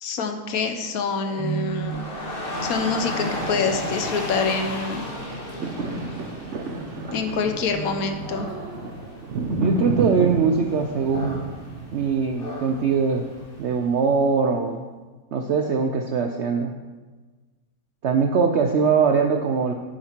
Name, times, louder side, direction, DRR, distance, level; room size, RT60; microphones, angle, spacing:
voice 1, 0.0-2.1 2.6-5.1 7.1-8.5, left 5 dB, 65° left, 7 dB, 1.1 m, -26 dB
sound 1, 1.2-11.4, right 5 dB, 10° right, 1.1 m, -38 dB
Dog / Rain, 1.6-13.8, left 1 dB, 35° left, 1.3 m, -35 dB
sound 2, 5.2-13.5 14.0-14.1, right 2 dB, 50° right, 1.1 m, -31 dB
voice 2, 9.6-11.4 11.9-13.3 13.6-14.8 15.3-16.7 18.0-19.7, right 5 dB, 70° right, 4 dB, 0.6 m, -22 dB
8.9 x 7.3 x 4.4 m, 1.3 s
omnidirectional pair, 1.8 m